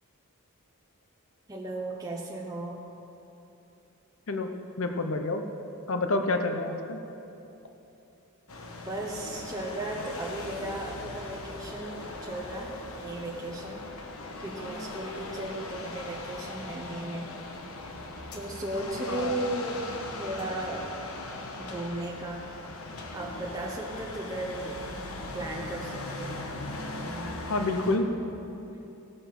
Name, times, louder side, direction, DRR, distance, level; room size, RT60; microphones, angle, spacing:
voice 1, 1.5-2.8 8.9-13.8 14.4-17.3 18.3-19.8 20.2-20.9 21.6-22.5 23.1-24.8 25.3-26.4 27.0-27.8, right 1 dB, 15° right, -2 dB, 0.8 m, -36 dB
voice 2, 4.8-5.4 5.9-7.0 19.1-19.4 27.5-28.1, left 2 dB, 70° left, 6 dB, 0.7 m, -28 dB
sound 1, 8.5-28.0, left 2 dB, 85° left, 1.1 m, -39 dB
16.0 x 6.9 x 5.8 m, 2.9 s
head